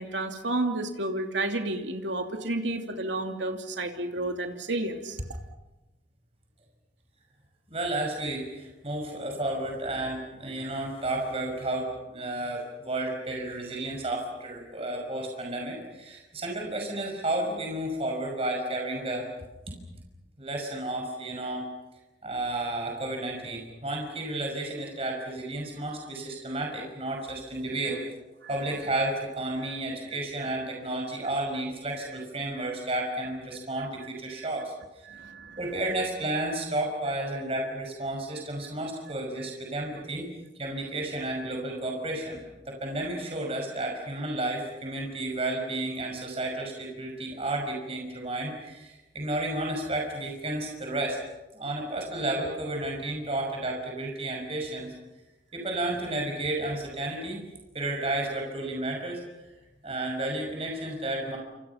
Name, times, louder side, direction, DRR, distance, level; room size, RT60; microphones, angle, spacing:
voice 1, 0.0-5.2 35.1-35.6, right 2 dB, 80° right, 4 dB, 2.9 m, -31 dB
voice 2, 7.7-19.3 19.7-19.8 20.4-21.7 22.2-28.0 28.5-35.1 35.6-40.3 40.5-42.4 42.7-51.2 51.5-54.9 55.5-57.4 57.7-59.4 59.8-61.4, right 1 dB, 30° right, 1 dB, 5.8 m, -32 dB
29.0 x 27.5 x 5.8 m, 1.0 s
head